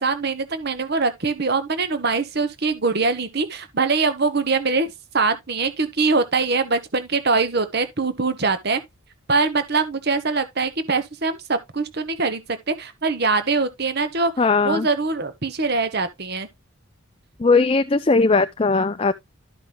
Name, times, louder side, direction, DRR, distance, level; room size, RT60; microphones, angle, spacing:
voice 1, 0.0-8.8 9.3-12.4 12.7-16.5, right 4 dB, 50° right, 1.2 m, -23 dB
voice 2, 14.4-14.9 17.4-19.1, left 3 dB, 25° left, 0.5 m, -18 dB
13.0 x 5.5 x 3.0 m
head